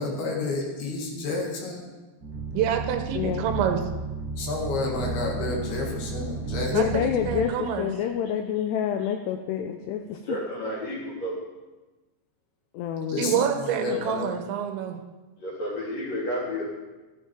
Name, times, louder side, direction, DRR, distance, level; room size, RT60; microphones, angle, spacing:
voice 1, 0.0-1.9 4.4-7.0 13.1-14.3, left 3 dB, 65° left, 0 dB, 3.4 m, -30 dB
sound 1, 2.2-7.4, right 4 dB, 50° right, 0.9 m, -33 dB
voice 2, 2.5-3.8 6.7-7.9 13.2-15.0, right 8 dB, 80° right, 5 dB, 3.2 m, -27 dB
voice 3, 3.2-3.5 6.7-7.5 7.8-10.4 12.7-13.4, left 9 dB, 85° left, 6 dB, 2.5 m, -27 dB
voice 4, 10.2-11.4 15.4-16.6, equal, 40° left, -5 dB, 4.3 m, -31 dB
14.5 x 12.0 x 4.5 m, 1.2 s
omnidirectional pair, 5.3 m